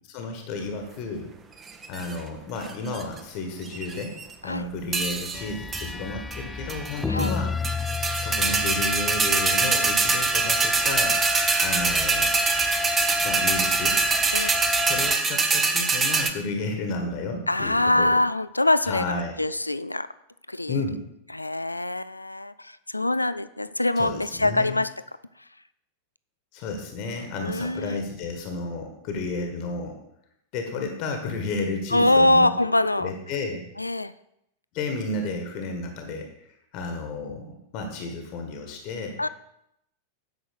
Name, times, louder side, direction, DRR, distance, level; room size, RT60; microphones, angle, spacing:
voice 1, 0.1-1.3 1.9-7.5 8.1-11.2 11.6-12.3 13.2-14.0 14.8-18.1 18.8-19.3 20.7-21.1 24.0-24.8 26.5-30.0 30.5-32.5 33.0-33.6 34.7-39.2, left 3 dB, 45° left, 4 dB, 1.6 m, -32 dB
sound 1, 1.7-2.1 2.7-3.2 3.7-4.3 4.9-5.4 5.7-5.9 6.3-6.4 6.7-7.3 7.6-16.3, right 4 dB, 20° right, 1.0 m, -24 dB
sound 2, 5.3-15.2, left 4 dB, 10° left, 0.4 m, -31 dB
voice 2, 17.5-20.1 20.5-20.8 21.3-24.9 27.4-28.0 31.9-33.1 33.8-34.1 39.2-39.3, left 1 dB, 85° left, 15 dB, 0.3 m, -24 dB
9.6 x 6.2 x 6.7 m, 0.79 s
figure-of-eight pair, 90°, 0 cm